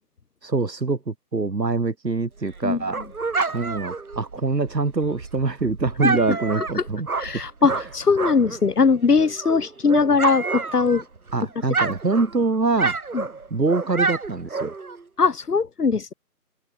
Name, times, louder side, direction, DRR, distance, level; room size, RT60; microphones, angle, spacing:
voice 1, 0.4-3.0 3.5-7.1 11.3-13.0 13.5-14.7, right 3 dB, 90° right, 1.9 m, -24 dB
Dog, 2.4-8.7 9.0-11.3 11.6-15.0, right 4 dB, 60° right, 2.6 m, -28 dB
voice 2, 7.2-11.0 13.1-13.2 15.2-16.1, left 5 dB, 70° left, 1.3 m, -20 dB
open air
figure-of-eight pair, 160°, 48 cm